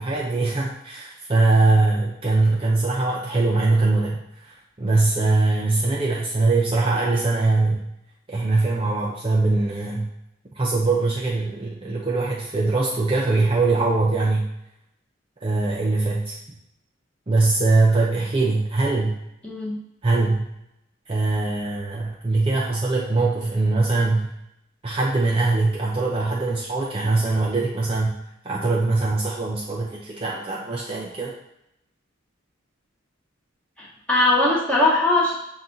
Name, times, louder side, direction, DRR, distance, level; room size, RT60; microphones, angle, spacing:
voice 1, 0.0-7.8 8.3-10.1 10.6-14.5 15.4-16.3 17.3-19.1 20.0-20.5 21.1-24.3 24.8-28.1 28.4-31.3, right 3 dB, 30° right, -4 dB, 0.5 m, -22 dB
voice 2, 19.4-19.8 33.8-35.3, left 2 dB, 5° left, -7 dB, 1.2 m, -20 dB
5.8 x 2.3 x 3.9 m, 0.82 s
head